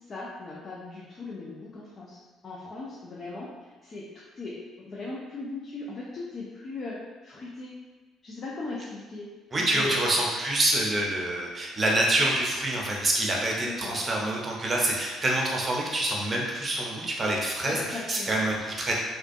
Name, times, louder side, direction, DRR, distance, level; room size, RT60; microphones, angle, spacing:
voice 1, 0.1-4.1 4.4-7.7 8.2-9.3 9.6-10.0 13.6-14.0 17.6-18.4, left 3 dB, 45° left, -5 dB, 0.5 m, -38 dB
voice 2, 9.5-18.9, right 1 dB, 35° right, -2 dB, 0.7 m, -26 dB
2.5 x 2.3 x 2.6 m, 1.3 s
supercardioid pair, 65°, 0 cm